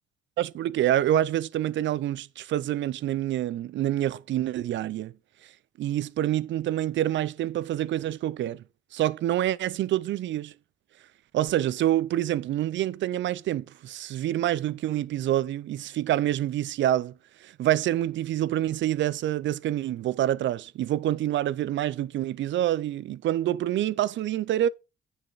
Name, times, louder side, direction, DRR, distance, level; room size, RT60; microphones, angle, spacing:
voice 1, 0.4-5.1 5.8-8.6 8.9-10.5 11.3-17.1 17.4-24.7, right 12 dB, 70° right, 0.5 m, -27 dB
9.4 x 6.6 x 4.0 m
cardioid pair, 90°, 20 cm